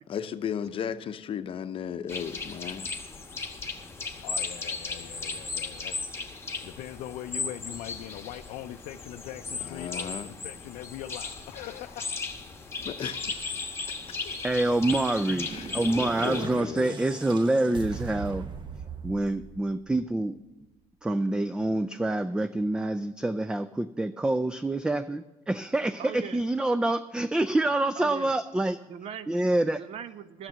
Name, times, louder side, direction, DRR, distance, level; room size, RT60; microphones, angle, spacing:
voice 1, 0.1-2.9 9.6-10.3 12.8-13.6 13.8-14.2 15.5-15.7 16.2-17.0, left 8 dB, 45° left, 0.7 m, -35 dB
sound 1, 2.1-16.5, left 4 dB, 20° left, 1.1 m, -36 dB
voice 2, 4.2-6.0 6.6-12.2 14.2-14.4 14.9-15.0, left 13 dB, 80° left, 0.4 m, -41 dB
voice 3, 14.4-15.5 15.7-18.4 19.0-20.4 21.0-28.8 29.3-29.8, right 2 dB, 5° right, 0.3 m, -26 dB
sound 2, 14.9-20.2, right 5 dB, 40° right, 1.0 m, -40 dB
voice 4, 26.0-26.4 28.0-28.3 28.9-29.4 29.8-30.5, right 8 dB, 55° right, 0.6 m, -40 dB
12.0 x 6.8 x 7.4 m
cardioid pair, 105°, 12 cm